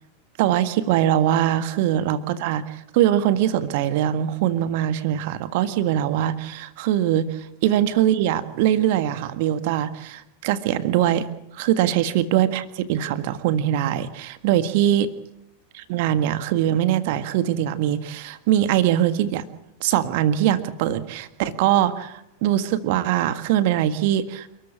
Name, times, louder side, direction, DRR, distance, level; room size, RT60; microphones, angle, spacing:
voice 1, 0.4-11.3 11.5-15.1 15.7-19.4 19.8-24.5, right 11 dB, 50° right, 11 dB, 1.7 m, -22 dB
28.5 x 14.0 x 8.5 m, 0.84 s
figure-of-eight pair, 90°, 0 cm